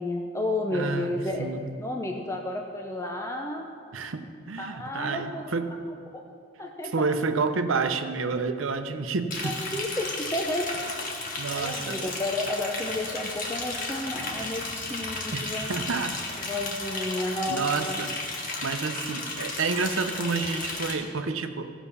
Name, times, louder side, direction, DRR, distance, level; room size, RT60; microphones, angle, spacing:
voice 1, 0.0-1.5 1.8-3.7 4.6-5.4 6.6-7.1 9.4-10.7 11.5-15.8 16.4-18.1, left 1 dB, 15° left, 1 dB, 0.6 m, -31 dB
voice 2, 0.7-1.8 3.9-5.7 6.9-9.6 11.4-12.0 15.3-15.4 15.7-16.2 17.5-18.1 18.6-21.7, right 4 dB, 90° right, 8 dB, 0.7 m, -29 dB
Liquid, 9.3-20.9, left 3 dB, 45° left, 1.5 m, -34 dB
15.0 x 6.1 x 5.5 m, 2.3 s
head